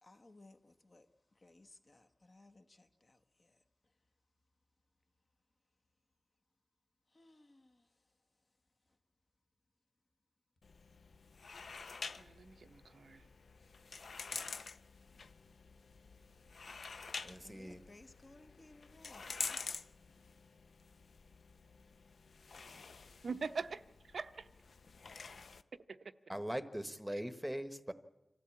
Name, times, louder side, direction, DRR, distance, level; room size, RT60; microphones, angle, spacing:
voice 1, 0.0-3.9 7.1-8.1 8.9-9.0 17.4-19.6, left 2 dB, 40° left, 1.2 m, -62 dB
sound 1, 10.6-25.6, left 4 dB, 75° left, 0.6 m, -48 dB
voice 2, 12.2-13.2 23.2-23.8 24.1-24.5 25.9-26.0, right 4 dB, 80° right, 0.7 m, -42 dB
voice 3, 17.2-17.8 26.3-27.9, equal, 5° right, 1.1 m, -41 dB
25.5 x 14.0 x 8.6 m
wide cardioid pair, 110°, 0 cm